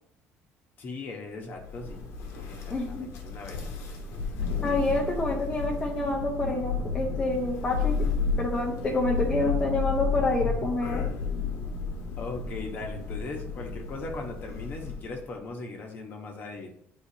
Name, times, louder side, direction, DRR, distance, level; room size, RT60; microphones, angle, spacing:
voice 1, 0.8-2.1 2.5-3.7 12.2-16.7, left 3 dB, 40° left, 2 dB, 1.2 m, -39 dB
Thunder, 1.6-15.2, left 5 dB, 70° left, 1.3 m, -32 dB
voice 2, 2.7-3.1 4.6-8.1 8.4-11.1, left 2 dB, 20° left, -2 dB, 0.9 m, -28 dB
9.9 x 4.1 x 2.8 m, 0.68 s
cardioid pair, 160°, 5 cm